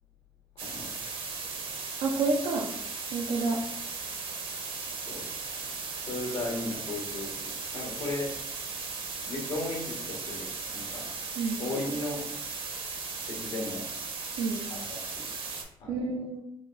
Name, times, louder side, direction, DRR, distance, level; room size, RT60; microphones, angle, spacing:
voice 1, 0.6-0.9 5.1-5.2 6.0-8.3 9.2-11.1 11.6-12.2 13.3-13.9 14.7-15.2 15.8-16.0, left 2 dB, 80° left, -2 dB, 1.3 m, -36 dB
sound 1, 0.6-15.6, right 4 dB, 60° right, 0.7 m, -37 dB
voice 2, 2.0-2.7 3.1-3.6 11.4-11.6 14.4-14.6 15.9-16.4, right 3 dB, 90° right, -1 dB, 0.5 m, -29 dB
4.8 x 2.3 x 2.5 m, 0.75 s
supercardioid pair, 55°, 11 cm